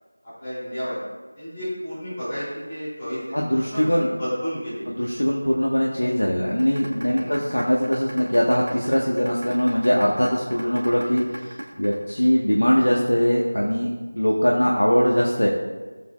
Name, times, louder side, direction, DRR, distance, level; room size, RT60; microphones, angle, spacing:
voice 1, 0.4-1.0 1.4-5.0 7.0-7.3, equal, 20° left, -12 dB, 3.5 m, -32 dB
voice 2, 3.3-4.1 4.9-15.5, equal, 80° left, -3 dB, 1.7 m, -21 dB
sound 1, 6.6-12.6, right 1 dB, 45° right, 1.6 m, -36 dB
16.0 x 7.8 x 2.6 m, 1.3 s
figure-of-eight pair, 170°, 0 cm